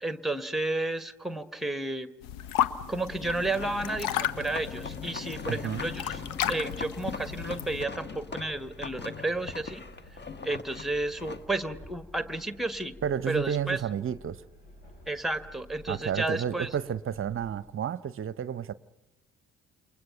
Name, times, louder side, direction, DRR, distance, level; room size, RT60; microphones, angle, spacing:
voice 1, 0.0-2.1 2.9-6.2 6.5-9.8 10.4-13.0 13.3-13.8 15.1-16.7, right 2 dB, ahead, 1.3 m, -32 dB
sound 1, 2.2-7.8, left 11 dB, 65° left, 0.9 m, -34 dB
Train, 2.4-17.6, equal, 85° left, 7.9 m, -52 dB
sound 2, 3.2-11.5, left 5 dB, 30° left, 1.3 m, -41 dB
voice 2, 5.5-5.8 13.0-14.4 15.9-18.7, right 8 dB, 35° right, 0.8 m, -31 dB
28.5 x 24.0 x 5.8 m
figure-of-eight pair, 45°, 37 cm